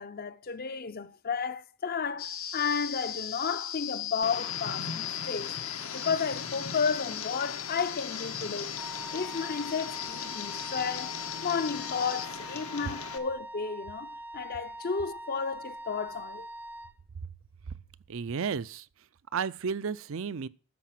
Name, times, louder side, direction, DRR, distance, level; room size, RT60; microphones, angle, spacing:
voice 1, 0.0-5.5 5.9-8.7 9.1-11.1 11.4-16.5, left 5 dB, 45° left, 0.6 m, -32 dB
sound 1, 2.2-12.3, left 10 dB, 70° left, 1.1 m, -38 dB
Tick, 4.2-13.2, left 5 dB, 85° left, 1.4 m, -41 dB
Wind instrument woodwind instrument, 8.8-17.0, right 1 dB, 10° right, 0.5 m, -44 dB
voice 2, 18.1-18.9 19.3-20.5, right 6 dB, 65° right, 0.5 m, -32 dB
13.0 x 5.1 x 7.5 m
head